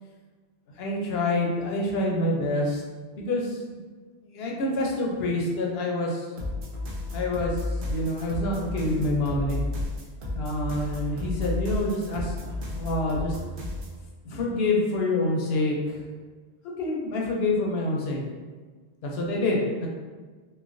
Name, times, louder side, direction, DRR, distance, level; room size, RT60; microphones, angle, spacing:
voice 1, 0.8-2.8 3.2-3.6 4.3-6.3 7.1-9.6 10.3-12.5 12.8-13.4 14.2-16.0 16.8-18.2 19.0-19.9, left 2 dB, 75° left, -1 dB, 0.8 m, -27 dB
sound 1, 6.4-14.0, left 2 dB, 65° right, 0.7 m, -32 dB
3.0 x 2.1 x 2.5 m, 1.4 s
omnidirectional pair, 1.1 m